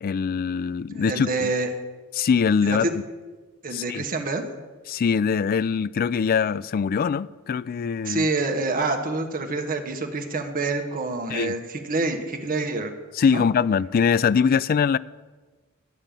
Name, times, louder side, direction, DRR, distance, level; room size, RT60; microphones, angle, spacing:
voice 1, 0.0-1.5 2.2-2.9 3.7-4.0 4.9-8.3 11.3-11.5 13.1-15.0, left 6 dB, 45° left, 0.3 m, -22 dB
voice 2, 0.9-1.7 2.6-2.8 3.6-4.4 8.0-12.9 13.3-13.4, right 3 dB, 40° right, 1.2 m, -27 dB
12.0 x 5.4 x 8.9 m
head